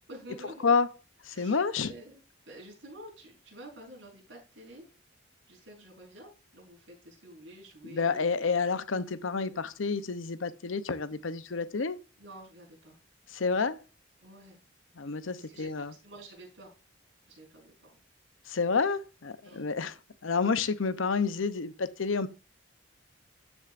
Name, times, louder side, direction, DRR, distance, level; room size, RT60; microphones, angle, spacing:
voice 1, 0.1-0.6 1.3-4.9 5.5-8.5 9.5-9.6 12.2-13.0 14.2-14.6 15.4-16.7 17.3-18.0 19.4-19.8, right 1 dB, 65° right, 4.8 m, -50 dB
voice 2, 1.2-1.9 7.8-12.0 13.3-13.8 15.0-15.9 18.5-20.0 20.2-22.3, left 5 dB, 80° left, 0.7 m, -29 dB
13.5 x 6.2 x 2.5 m
head